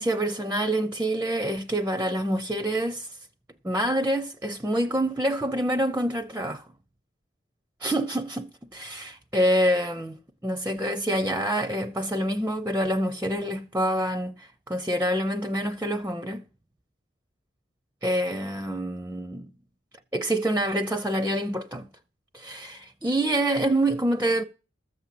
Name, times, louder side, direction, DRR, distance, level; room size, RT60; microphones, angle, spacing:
voice 1, 0.0-3.1 3.6-6.7 7.8-10.2 10.4-16.4 18.0-19.5 20.1-21.9 22.3-24.4, right 1 dB, 10° right, 0.5 m, -26 dB
14.0 x 7.3 x 7.6 m
head